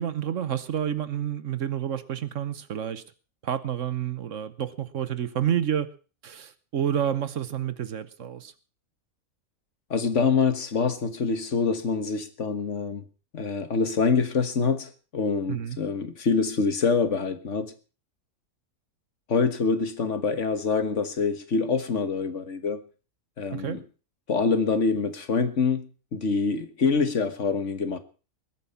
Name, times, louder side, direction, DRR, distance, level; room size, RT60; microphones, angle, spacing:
voice 1, 0.0-3.0 3.4-5.9 6.2-8.5 15.5-15.8 23.5-23.8, right 9 dB, 65° right, 1.3 m, -29 dB
voice 2, 9.9-13.0 13.3-17.7 19.3-22.8 23.4-23.8 24.3-28.0, left 5 dB, 60° left, 1.7 m, -25 dB
20.5 x 9.0 x 5.6 m
omnidirectional pair, 1.5 m